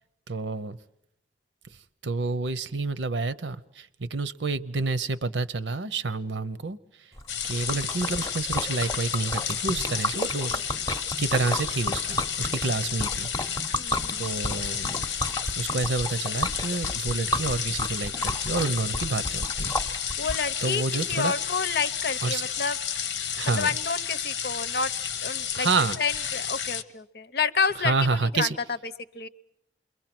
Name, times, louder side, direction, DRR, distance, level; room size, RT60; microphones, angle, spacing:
voice 1, 0.3-0.8 2.0-6.8 7.4-10.6 11.2-13.3 14.2-15.0 15.6-19.7 20.1-20.3 20.6-21.3 22.2-22.4 23.4-23.7 25.5-26.0 27.8-28.6, right 3 dB, 85° right, 14 dB, 0.8 m, -29 dB
Liquid, 7.2-20.4, left 1 dB, 20° left, 0.8 m, -32 dB
sound 1, 7.3-26.8, left 8 dB, 90° left, 1.1 m, -31 dB
voice 2, 13.8-14.3 20.2-20.8 21.1-22.8 23.5-24.9 25.2-25.7 26.0-28.5 28.8-29.3, left 5 dB, 60° left, 13 dB, 0.8 m, -29 dB
28.0 x 22.5 x 6.1 m, 0.77 s
head